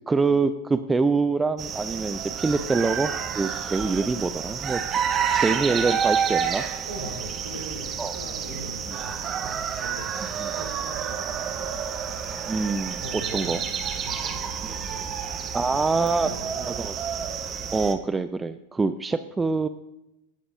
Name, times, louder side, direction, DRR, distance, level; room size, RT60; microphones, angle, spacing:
voice 1, 0.1-4.8 5.3-6.6 8.0-8.1 12.5-13.0 13.3-13.6 15.5-16.3 16.8-16.9 17.7-19.7, right 4 dB, 10° right, 11 dB, 0.3 m, -25 dB
sound 1, 1.6-17.9, right 7 dB, 30° right, 0.8 m, -29 dB
voice 2, 6.9-12.0 12.8-15.2 15.6-17.5, right 1 dB, 70° right, 0 dB, 2.7 m, -41 dB
15.5 x 6.8 x 2.6 m, 0.88 s
figure-of-eight pair, 90°, 0 cm